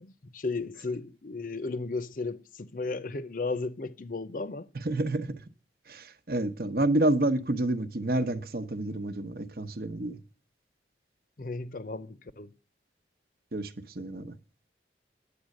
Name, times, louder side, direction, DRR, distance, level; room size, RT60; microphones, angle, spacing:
voice 1, 0.0-4.7 11.4-12.5, left 3 dB, 50° left, 0.6 m, -35 dB
voice 2, 4.7-5.3 5.9-10.2 13.5-14.3, right 1 dB, 55° right, 0.9 m, -29 dB
10.5 x 8.3 x 6.4 m
head